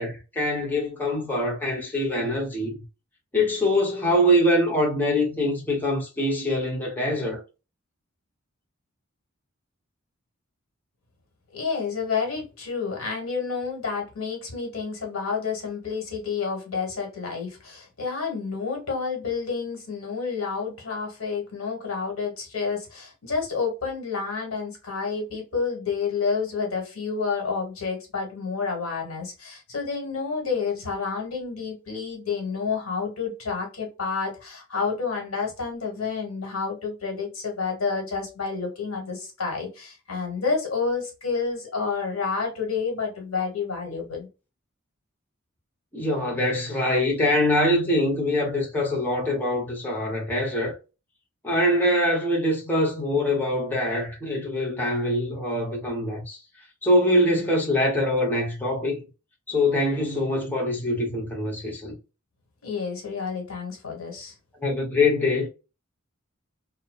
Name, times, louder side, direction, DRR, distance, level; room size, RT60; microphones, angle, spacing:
voice 1, 0.0-2.8 3.3-7.4 45.9-50.7 51.4-56.4 56.8-59.0 59.5-61.9 64.6-65.5, left 1 dB, 10° left, 0.7 m, -24 dB
voice 2, 11.5-44.3 62.6-64.3, left 5 dB, 80° left, 1.2 m, -29 dB
2.7 x 2.1 x 2.2 m
head